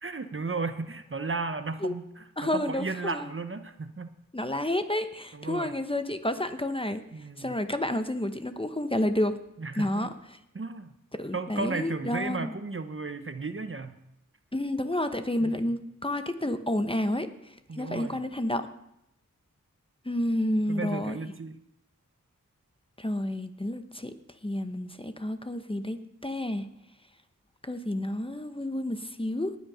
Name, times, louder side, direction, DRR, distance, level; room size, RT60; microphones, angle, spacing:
voice 1, 0.0-2.3 2.5-4.1 5.3-5.7 7.1-7.6 9.6-10.1 10.5-10.9 11.3-14.0 15.4-15.6 17.7-18.2 20.7-21.6, right 3 dB, 40° right, 9 dB, 0.9 m, -34 dB
voice 2, 2.4-3.3 4.3-7.0 7.4-9.3 9.8-10.1 11.2-12.5 14.5-17.3 17.8-18.6 20.0-21.2 23.0-24.1 24.4-26.7 27.6-29.6, left 1 dB, 15° left, 9 dB, 0.9 m, -30 dB
19.0 x 6.4 x 5.6 m, 0.81 s
wide cardioid pair, 50°, 33 cm